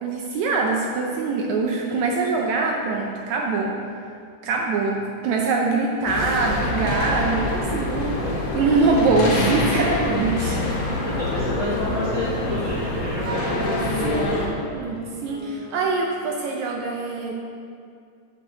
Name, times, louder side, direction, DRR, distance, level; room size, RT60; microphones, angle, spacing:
voice 1, 0.0-3.7 4.4-10.7 13.3-17.4, right 3 dB, 75° right, 0 dB, 1.8 m, -24 dB
sound 1, 6.1-14.5, left 2 dB, 80° left, 2.9 m, -25 dB
voice 2, 11.2-13.6 14.9-15.0, equal, 15° left, -10 dB, 1.4 m, -30 dB
Wind instrument woodwind instrument, 11.5-16.5, equal, 30° right, 2.5 m, -42 dB
6.8 x 5.4 x 6.5 m, 2.3 s
omnidirectional pair, 3.6 m